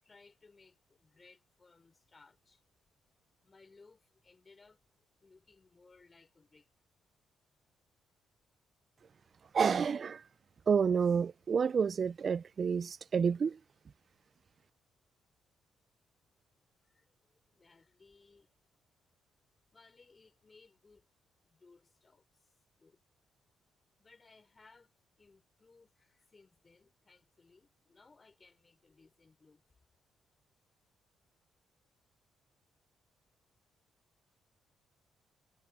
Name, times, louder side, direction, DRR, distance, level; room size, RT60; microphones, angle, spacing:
voice 1, 0.0-2.6 3.4-4.8 5.2-6.7 16.8-17.1 17.5-18.5 19.7-21.1 21.4-23.0 24.0-29.6, left 4 dB, 30° left, 5.7 m, -63 dB
voice 2, 9.5-10.2 10.7-13.6, right 6 dB, 45° right, 0.3 m, -29 dB
cardioid pair, 90°, 0 cm